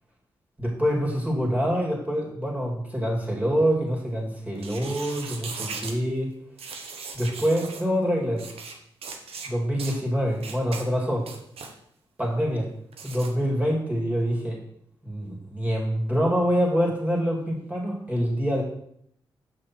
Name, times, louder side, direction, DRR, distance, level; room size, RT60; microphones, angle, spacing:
voice 1, 0.6-6.3 7.1-8.5 9.5-11.3 12.2-12.7 13.0-14.6 15.0-18.6, equal, 15° right, -2 dB, 2.9 m, -25 dB
sound 1, 4.6-6.0 6.6-7.8 8.4-8.7 9.0-9.5 9.8-10.0 10.4-10.8 11.2-11.7 12.9-13.3, right 5 dB, 70° right, 1.0 m, -38 dB
6.1 x 5.9 x 4.6 m, 0.71 s
supercardioid pair, 45°, 10 cm